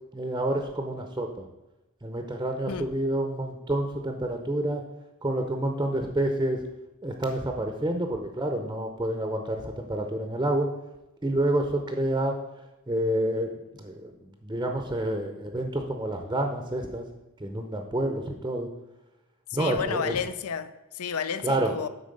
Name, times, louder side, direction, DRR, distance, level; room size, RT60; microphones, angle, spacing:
voice 1, 0.1-1.4 2.0-4.8 5.2-6.6 7.0-10.7 11.2-12.4 12.9-14.1 14.4-17.0 17.4-18.7 19.5-20.1 21.4-21.7, right 1 dB, 15° right, 0.6 m, -28 dB
voice 2, 19.5-21.9, left 6 dB, 75° left, 0.5 m, -31 dB
9.1 x 4.2 x 6.6 m
head